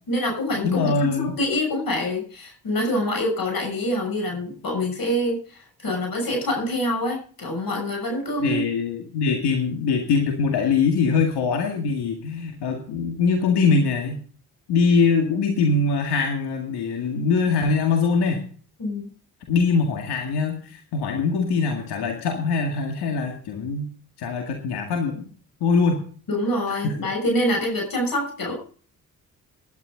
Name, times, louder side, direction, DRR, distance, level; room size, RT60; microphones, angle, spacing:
voice 1, 0.1-8.6 18.8-19.1 26.3-28.5, left 1 dB, 60° left, 1 dB, 6.7 m, -26 dB
voice 2, 0.6-1.3 8.4-14.2 14.7-18.4 19.5-23.9 24.2-25.2 25.6-26.0 26.7-27.0, left 4 dB, 90° left, 3 dB, 2.1 m, -22 dB
18.0 x 11.0 x 3.9 m, 0.43 s
cardioid pair, 65°, 39 cm